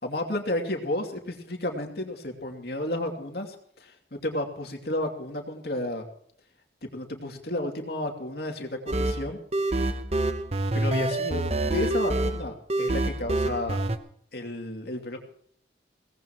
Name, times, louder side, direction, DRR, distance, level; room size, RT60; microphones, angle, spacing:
voice 1, 0.0-6.0 6.8-9.4 9.7-9.8 10.7-13.8 14.3-15.2, left 1 dB, 60° left, 3 dB, 2.6 m, -32 dB
sound 1, 8.9-14.0, right 2 dB, 35° right, 0.9 m, -26 dB
22.5 x 18.0 x 3.0 m, 0.64 s
head